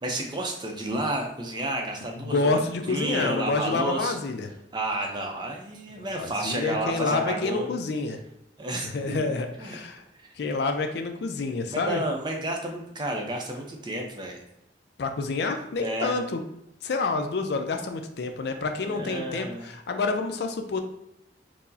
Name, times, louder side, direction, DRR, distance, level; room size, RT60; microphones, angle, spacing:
voice 1, 0.0-4.2 4.7-7.7 8.6-9.3 9.6-9.8 10.2-10.3 11.7-14.4 15.8-16.2 18.8-19.7, right 1 dB, 25° right, 1 dB, 0.5 m, -31 dB
voice 2, 2.2-4.5 6.2-8.2 8.9-10.0 10.4-12.0 15.0-16.4 16.8-20.8, left 3 dB, 60° left, 6 dB, 0.4 m, -28 dB
4.5 x 2.0 x 2.7 m, 0.83 s
head